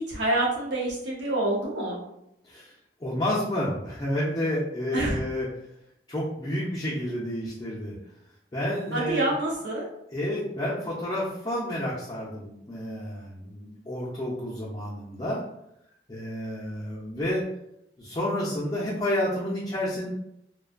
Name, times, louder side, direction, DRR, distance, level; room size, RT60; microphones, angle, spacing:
voice 1, 0.0-2.0 4.9-5.2 8.9-9.8, right 1 dB, 90° right, -4 dB, 0.9 m, -27 dB
voice 2, 3.0-5.5 6.1-8.0 8.5-9.3 10.1-15.4 16.1-17.5 18.0-20.1, left 1 dB, 25° left, -8 dB, 0.5 m, -30 dB
2.5 x 2.2 x 2.4 m, 0.80 s
head